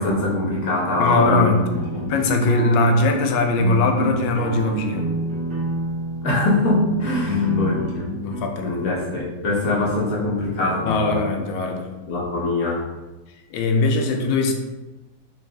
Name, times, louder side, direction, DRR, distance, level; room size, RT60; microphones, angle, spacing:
voice 1, 0.0-2.0 6.2-8.1 8.6-11.2 12.1-12.8, left 2 dB, 60° left, -4 dB, 1.1 m, -23 dB
voice 2, 1.0-1.6 2.1-5.1 7.3-7.8 8.2-8.8 10.9-11.9 13.5-14.5, left 3 dB, 85° left, 3 dB, 1.3 m, -20 dB
sound 1, 1.7-8.4, right 3 dB, 60° right, 1.4 m, -28 dB
3.9 x 2.6 x 3.2 m, 1.1 s
omnidirectional pair, 2.1 m